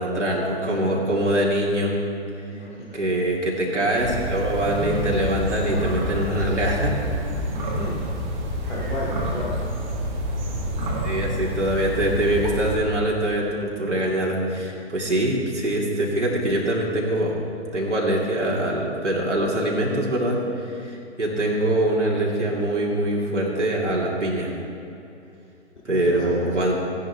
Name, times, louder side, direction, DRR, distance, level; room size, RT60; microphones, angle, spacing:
voice 1, 0.0-2.0 2.9-6.9 11.0-17.3 17.7-20.4 20.7-24.5 25.9-26.7, right 1 dB, 85° right, -3 dB, 2.6 m, -23 dB
voice 2, 2.5-3.0 7.7-8.0 8.7-9.5 25.8-26.6, left 2 dB, 70° left, -7 dB, 2.3 m, -34 dB
sound 1, 4.0-12.8, equal, 40° right, 1.7 m, -28 dB
15.5 x 10.5 x 3.5 m, 2.7 s
figure-of-eight pair, 125°, 35 cm